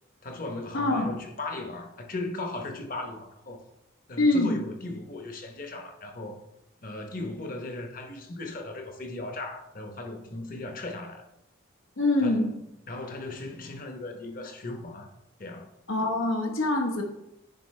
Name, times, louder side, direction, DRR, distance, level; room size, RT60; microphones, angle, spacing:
voice 1, 0.2-3.6 4.1-6.4 6.8-11.2 12.2-12.6 12.9-15.1 15.4-15.7, left 2 dB, 45° left, 0.9 m, -37 dB
voice 2, 0.7-1.1 4.2-4.5 12.0-12.5 15.9-17.0, left 2 dB, 85° left, 1.0 m, -24 dB
9.2 x 4.9 x 3.2 m
head